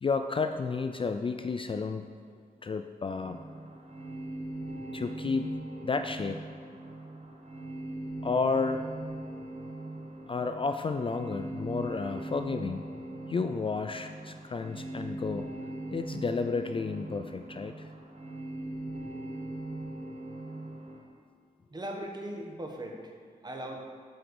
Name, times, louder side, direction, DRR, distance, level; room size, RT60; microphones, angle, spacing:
voice 1, 0.0-2.0 2.6-3.4 4.9-5.5 5.8-6.4 8.2-8.8 10.3-12.8 13.3-15.5 15.9-17.9, left 4 dB, 35° left, 8 dB, 0.3 m, -31 dB
sound 1, 3.1-21.0, right 2 dB, 45° right, 1.4 m, -40 dB
voice 2, 21.7-23.1 23.4-23.8, right 1 dB, 25° right, 1 dB, 1.2 m, -38 dB
7.8 x 4.5 x 5.3 m, 2.1 s
cardioid pair, 70°, 16 cm